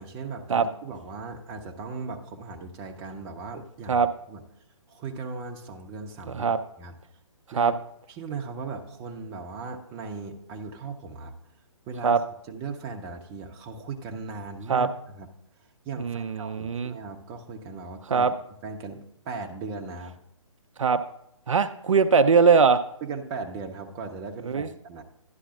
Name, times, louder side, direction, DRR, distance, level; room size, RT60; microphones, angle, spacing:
voice 1, 0.0-4.4 4.9-6.9 7.5-7.8 8.1-11.3 11.9-12.2 12.5-15.3 15.8-18.4 18.6-20.2 23.0-25.0, right 4 dB, 20° right, 3 dB, 0.7 m, -38 dB
voice 2, 6.3-6.6 7.5-7.7 12.0-12.2 14.7-14.9 16.0-17.0 18.1-18.3 20.8-21.0 21.5-22.8 24.4-24.7, right 5 dB, 70° right, 9 dB, 0.5 m, -21 dB
11.5 x 11.5 x 2.4 m, 0.77 s
figure-of-eight pair, 140°, 17 cm